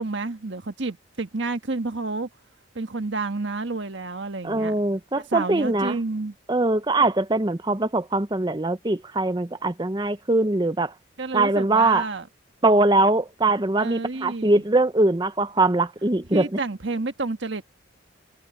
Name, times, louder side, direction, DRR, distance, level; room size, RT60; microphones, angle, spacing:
voice 1, 0.0-2.3 2.7-4.7 5.3-6.3 11.2-12.3 13.8-14.6 16.3-17.7, right 3 dB, 65° right, 1.4 m, -30 dB
voice 2, 4.4-6.0 6.5-10.9 11.3-12.1 12.6-16.6, right 2 dB, 20° right, 0.7 m, -22 dB
head